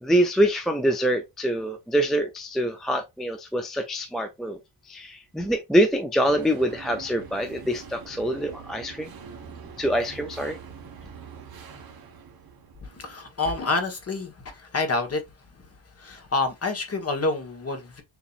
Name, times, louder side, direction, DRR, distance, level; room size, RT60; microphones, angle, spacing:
voice 1, 0.0-4.6 4.8-9.1 9.8-10.6, equal, ahead, 0.3 m, -25 dB
sound 1, 6.2-13.3, right 6 dB, 45° right, 1.3 m, -44 dB
voice 2, 12.8-18.0, left 3 dB, 30° left, 1.2 m, -28 dB
7.0 x 2.9 x 2.4 m
wide cardioid pair, 175°, 48 cm